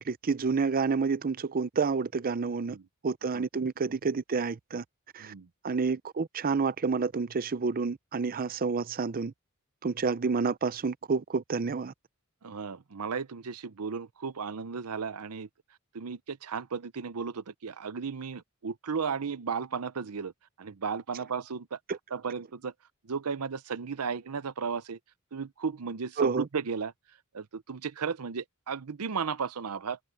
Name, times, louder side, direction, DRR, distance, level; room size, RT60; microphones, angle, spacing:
voice 1, 0.0-2.8 3.0-4.8 5.1-5.3 5.6-9.3 9.8-11.9 21.9-22.0 26.2-26.5, right 4 dB, 40° right, 0.5 m, -29 dB
voice 2, 12.4-15.5 15.9-20.3 20.6-21.8 22.1-22.7 23.0-25.0 25.3-26.9 27.3-30.0, right 5 dB, 85° right, 0.7 m, -34 dB
open air
head